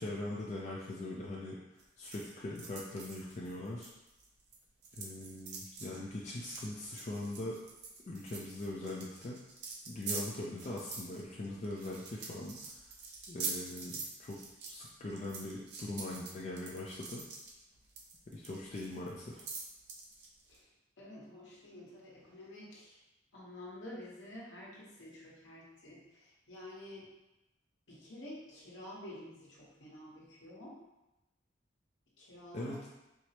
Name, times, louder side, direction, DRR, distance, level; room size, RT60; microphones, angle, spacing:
voice 1, 0.0-1.6 2.0-3.9 4.9-7.6 8.1-9.4 9.9-12.6 13.3-14.4 14.7-17.2 18.3-19.4 32.5-32.9, left 2 dB, 35° left, -4 dB, 0.3 m, -41 dB
sound 1, 1.8-4.6 4.8-20.6, right 4 dB, 60° right, 0.6 m, -45 dB
voice 2, 21.0-23.0 23.3-27.1 27.9-30.8 32.2-32.8, left 1 dB, 75° left, -6 dB, 1.1 m, -49 dB
4.5 x 2.0 x 2.8 m, 0.96 s
head